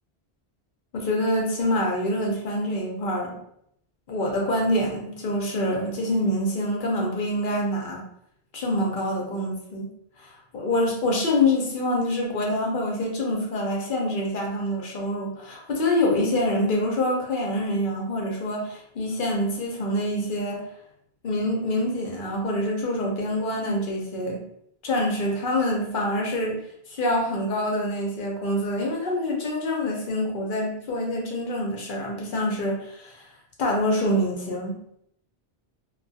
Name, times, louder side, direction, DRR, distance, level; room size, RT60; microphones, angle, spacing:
voice 1, 0.9-3.4 4.1-8.0 8.5-9.9 10.2-20.6 21.2-24.4 24.8-26.6 26.9-33.2 33.6-34.7, left 1 dB, 60° left, -1 dB, 0.7 m, -26 dB
2.3 x 2.3 x 2.6 m, 0.73 s
omnidirectional pair, 1.1 m